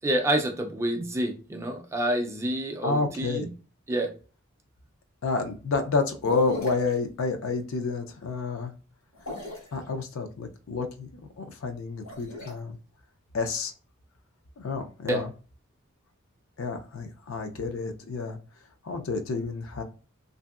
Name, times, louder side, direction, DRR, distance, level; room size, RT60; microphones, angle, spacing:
voice 1, 0.0-3.5 3.9-4.1 15.1-15.2, right 1 dB, 15° right, 3 dB, 0.3 m, -28 dB
voice 2, 2.8-3.5 5.2-8.7 9.7-11.1 11.4-12.8 13.3-13.7 14.6-15.3 16.6-18.4 18.8-19.8, left 4 dB, 70° left, 6 dB, 0.5 m, -29 dB
sound 1, 6.2-6.9 9.1-9.8 11.9-12.5, left 2 dB, 85° left, 1.3 m, -37 dB
2.9 x 2.6 x 2.3 m, 0.35 s
head